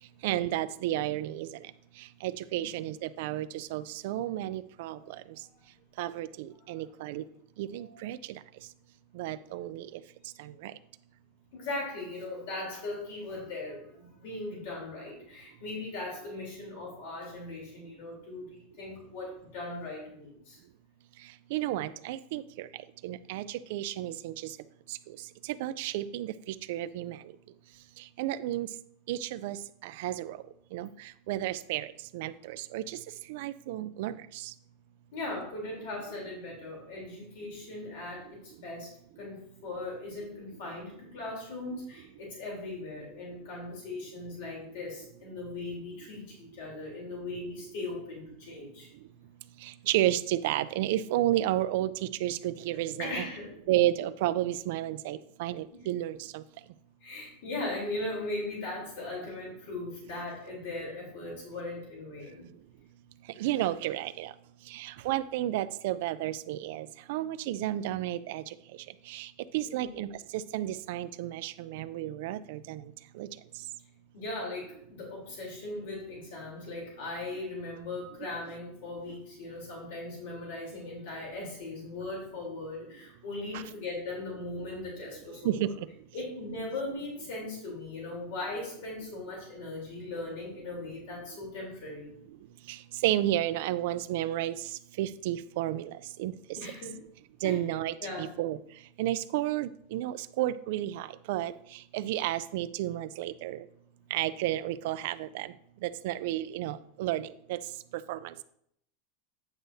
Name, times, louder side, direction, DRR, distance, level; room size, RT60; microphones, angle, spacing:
voice 1, 0.2-1.5 2.2-5.0 6.0-7.2 7.6-8.2 9.2-9.8 10.6-10.7 21.5-22.7 23.0-24.3 25.6-26.3 26.7-27.2 28.2-28.7 29.1-29.6 29.8-30.4 30.7-30.9 31.3-31.9 32.1-33.0 33.3-34.1 34.4-34.5 49.6-51.9 52.2-53.2 53.7-56.4 63.4-64.3 64.7-68.4 69.1-72.8 73.2-73.3 83.5-83.6 85.4-85.7 92.7-92.8 93.0-94.5 95.0-95.9 96.2-96.3 97.4-98.6 99.0-101.5 101.9-103.6 104.1-105.5 105.8-107.6 108.1-108.2, right 14 dB, 60° right, 12 dB, 0.4 m, -31 dB
voice 2, 2.5-2.8 5.0-5.1 6.7-7.1 7.7-7.9 11.5-20.6 35.1-38.9 39.2-48.9 53.0-53.5 55.7-55.9 57.0-62.5 69.6-69.9 74.1-85.7 86.1-92.1 96.5-97.0 97.4-97.6 98.0-98.3, left 2 dB, 65° left, -2 dB, 3.5 m, -39 dB
9.0 x 8.0 x 2.7 m, 0.71 s
supercardioid pair, 155°, 0 cm